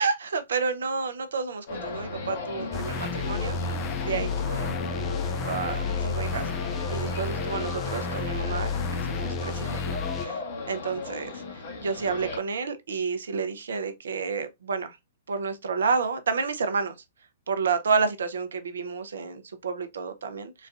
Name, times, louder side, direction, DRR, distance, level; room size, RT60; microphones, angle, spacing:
voice 1, 0.0-3.6 4.0-4.8 5.4-6.5 6.9-10.4 10.7-11.3 11.8-15.0 15.3-17.0 17.5-20.7, right 5 dB, 70° right, 0.6 m, -30 dB
sound 1, 1.7-12.4, left 3 dB, 60° left, 1.1 m, -35 dB
sound 2, 2.7-10.3, left 5 dB, 25° left, 0.3 m, -31 dB
4.1 x 2.3 x 2.4 m
hypercardioid pair, 120°, 0 cm